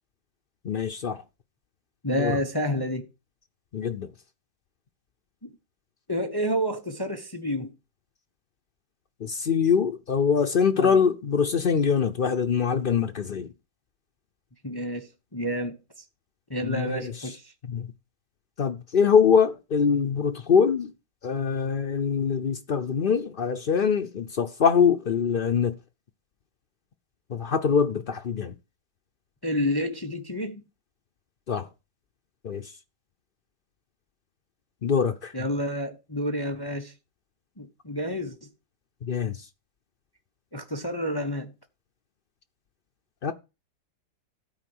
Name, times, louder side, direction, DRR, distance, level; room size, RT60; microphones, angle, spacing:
voice 1, 0.6-1.2 2.1-2.4 3.7-4.1 9.2-13.5 16.6-17.3 17.6-17.9 18.6-20.9 21.2-25.8 27.3-28.5 31.5-31.7 32.4-32.7 34.8-35.3 39.0-39.5 43.2-43.3, left 6 dB, 90° left, 0.4 m, -24 dB
voice 2, 2.0-3.1 5.4-5.5 6.1-7.7 10.8-11.0 14.6-15.8 16.5-17.5 29.4-30.6 35.3-36.9 37.6-38.5 40.5-41.5, equal, 20° left, 0.6 m, -29 dB
13.0 x 4.5 x 7.8 m
omnidirectional pair, 1.9 m